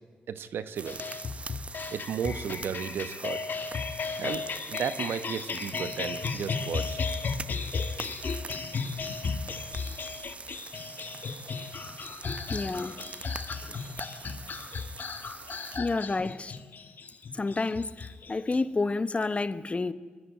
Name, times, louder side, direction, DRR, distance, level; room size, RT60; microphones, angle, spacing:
voice 1, 0.3-1.0 1.9-3.4 4.2-7.0, right 7 dB, 75° right, 1.0 m, -34 dB
sound 1, 0.8-18.6, left 5 dB, 55° left, 1.7 m, -35 dB
sound 2, 0.8-15.8, right 3 dB, 35° right, 0.7 m, -44 dB
voice 2, 12.5-13.0 13.6-13.8 15.8-16.6 17.3-19.9, left 3 dB, 35° left, 1.0 m, -30 dB
21.5 x 13.0 x 9.3 m
cardioid pair, 55°, 4 cm